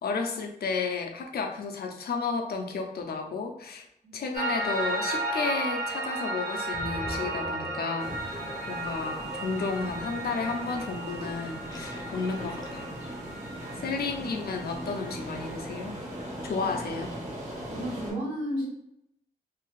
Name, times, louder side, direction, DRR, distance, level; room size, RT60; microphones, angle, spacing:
voice 1, 0.0-3.8 4.1-8.4 8.7-12.9 13.8-15.9 16.4-17.1, left 4 dB, 80° left, 3 dB, 0.5 m, -32 dB
Piano, 4.3-15.6, right 2 dB, 85° right, 0.9 m, -35 dB
Gurgling, 6.0-6.2 6.6-13.1, left 1 dB, 25° left, 0.5 m, -43 dB
sound 1, 8.0-18.1, equal, 45° right, 1.4 m, -39 dB
voice 2, 13.7-14.2 16.6-16.7 17.7-18.7, equal, 65° right, -8 dB, 1.4 m, -34 dB
2.7 x 2.5 x 3.0 m, 0.80 s
wide cardioid pair, 95°, 16 cm